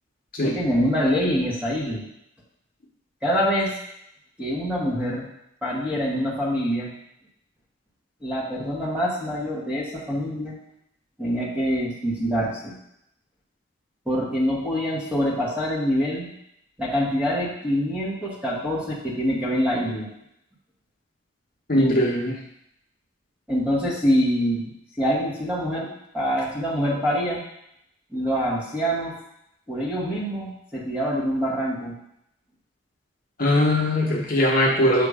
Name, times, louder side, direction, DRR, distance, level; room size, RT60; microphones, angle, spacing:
voice 1, 0.4-2.1 3.2-3.7 4.4-5.3 5.6-6.9 8.2-10.5 11.2-12.8 14.1-16.3 16.8-20.1 21.7-22.0 23.5-25.9 26.1-27.4 28.1-29.2 29.7-32.0, equal, 5° right, -5 dB, 1.2 m, -25 dB
voice 2, 21.7-22.3 33.4-35.1, left 1 dB, 45° left, -3 dB, 1.0 m, -20 dB
6.8 x 2.9 x 4.9 m, 0.77 s
head